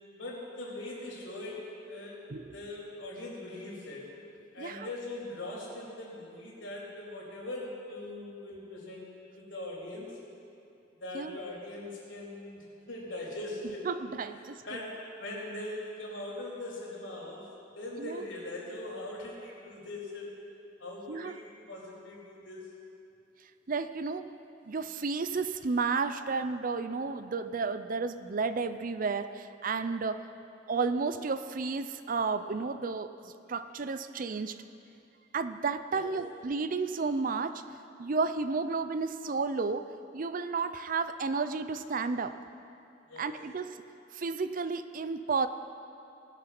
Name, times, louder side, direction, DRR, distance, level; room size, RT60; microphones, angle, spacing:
voice 1, 0.0-2.2 2.5-4.1 4.5-9.1 9.4-10.2 11.0-13.8 14.6-20.3 20.8-22.7 35.9-36.1 43.1-43.3, left 2 dB, 90° left, -5 dB, 3.8 m, -41 dB
voice 2, 4.6-4.9 11.1-11.4 13.8-14.6 18.0-18.2 21.1-21.3 23.7-24.2 24.7-30.2 30.7-34.6 35.3-37.6 38.0-42.4 43.2-43.7 44.1-45.5, right 4 dB, 45° right, 11 dB, 0.5 m, -32 dB
20.0 x 6.8 x 6.0 m, 2.7 s
head